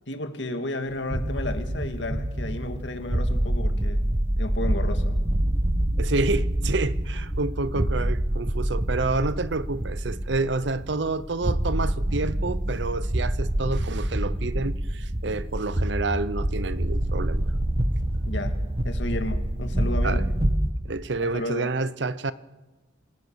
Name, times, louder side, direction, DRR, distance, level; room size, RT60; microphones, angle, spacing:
voice 1, 0.1-4.1 4.4-5.2 18.3-20.2 21.2-21.8, left 1 dB, 70° left, 7 dB, 2.2 m, -33 dB
sound 1, 0.9-20.7, right 1 dB, 30° right, 1.2 m, -26 dB
voice 2, 6.0-17.4 20.0-20.2 20.8-22.3, right 3 dB, 65° right, 16 dB, 0.8 m, -29 dB
28.0 x 17.5 x 6.4 m, 1.2 s
head